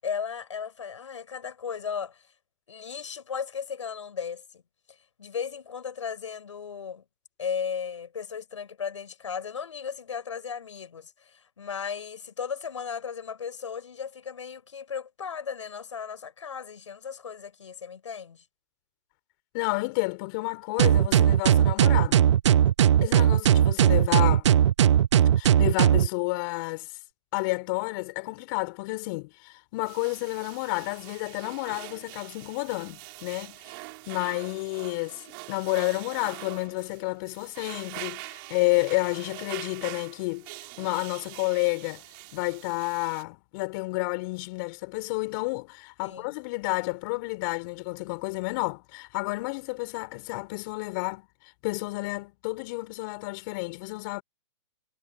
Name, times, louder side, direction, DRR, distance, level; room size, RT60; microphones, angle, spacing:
voice 1, 0.0-2.2 2.7-4.6 4.9-7.0 7.4-18.4 46.0-46.4, left 7 dB, 85° left, 7.5 m, -36 dB
voice 2, 19.5-22.2 23.0-24.5 25.4-26.9 27.3-33.6 34.1-35.2 35.5-40.5 40.8-42.0 42.3-51.2 51.6-54.2, left 26 dB, 45° left, 4.5 m, -30 dB
sound 1, 20.8-26.1, right 10 dB, 70° right, 0.7 m, -19 dB
sound 2, 29.8-43.2, right 27 dB, 45° right, 4.5 m, -44 dB
hypercardioid pair, 130°, 15 cm